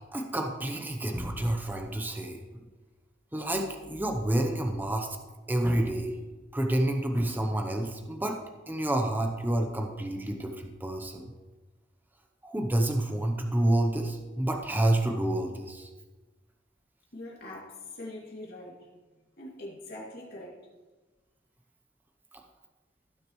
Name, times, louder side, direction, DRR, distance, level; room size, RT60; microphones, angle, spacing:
voice 1, 0.1-2.6 3.3-5.2 5.5-6.1 6.5-8.4 8.7-11.3 12.4-15.9, right 1 dB, 10° right, 3 dB, 0.8 m, -29 dB
voice 2, 17.1-18.9 19.4-20.7, left 1 dB, 60° left, -3 dB, 2.5 m, -43 dB
16.0 x 6.4 x 3.1 m, 1.3 s
head